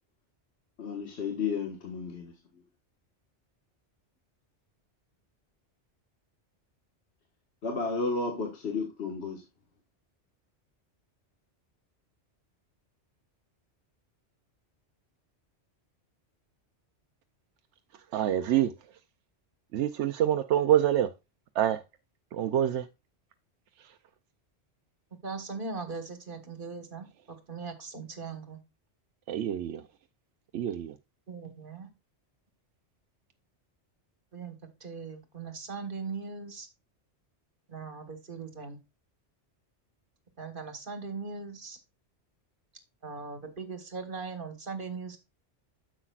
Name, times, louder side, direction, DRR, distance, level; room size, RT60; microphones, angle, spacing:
voice 1, 0.8-2.3 7.6-9.4, left 4 dB, 70° left, 1.7 m, -32 dB
voice 2, 17.9-18.7 19.7-21.1 21.5-21.8 22.3-22.9 23.8-23.9 29.3-29.8 30.5-30.9, right 11 dB, 85° right, 0.9 m, -26 dB
voice 3, 25.2-28.6 31.3-31.9 34.3-36.7 37.7-38.8 40.4-41.8 43.0-45.2, right 4 dB, 50° right, 1.6 m, -39 dB
9.7 x 7.3 x 2.3 m
omnidirectional pair, 1.2 m